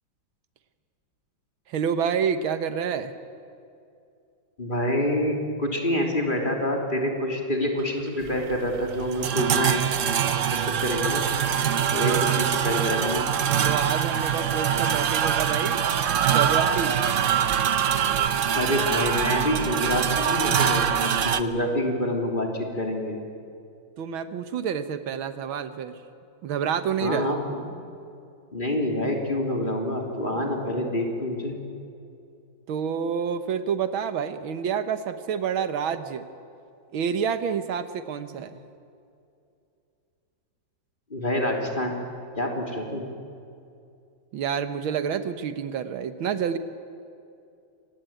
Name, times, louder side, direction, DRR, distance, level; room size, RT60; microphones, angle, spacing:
voice 1, 1.7-3.1 13.6-15.8 16.2-17.0 24.0-26.0 26.4-27.3 32.7-36.3 36.9-38.6 44.3-46.6, right 7 dB, 90° right, 10 dB, 2.0 m, -28 dB
voice 2, 4.6-9.8 10.5-11.3 11.9-13.2 18.5-23.2 27.0-27.7 28.5-31.6 41.1-42.0 42.4-43.0, left 1 dB, 25° left, 1 dB, 3.3 m, -27 dB
sound 1, 7.8-10.9 11.2-18.3, right 11 dB, 70° right, 1.4 m, -31 dB
sound 2, 8.2-21.4, right 8 dB, 55° right, 0.9 m, -24 dB
25.0 x 19.0 x 9.1 m, 2.5 s
omnidirectional pair, 2.2 m